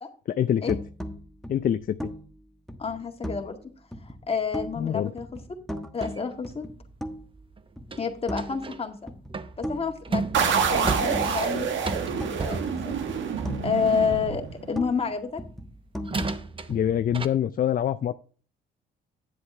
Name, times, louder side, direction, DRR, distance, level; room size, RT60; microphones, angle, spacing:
voice 1, 0.3-0.8 1.5-2.1 4.8-5.1 16.7-18.1, left 9 dB, 45° left, 12 dB, 0.5 m, -25 dB
sound 1, 0.7-3.6 3.9-4.9 5.2-7.4 7.8-8.8 9.1-12.6 12.9-15.1 15.4-17.2, equal, ahead, 1.2 m, -38 dB
voice 2, 2.8-3.6 4.0-5.3 5.9-6.7 8.0-9.0 9.6-12.9 13.6-15.4, left 6 dB, 30° left, 4 dB, 1.9 m, -29 dB
sound 2, 6.0-8.8 9.3-13.7 15.4-15.5 16.0-17.3, right 4 dB, 25° right, 0.8 m, -34 dB
sound 3, 10.3-14.9, right 7 dB, 75° right, 1.5 m, -27 dB
10.0 x 7.8 x 3.3 m, 0.41 s
cardioid pair, 90°, 20 cm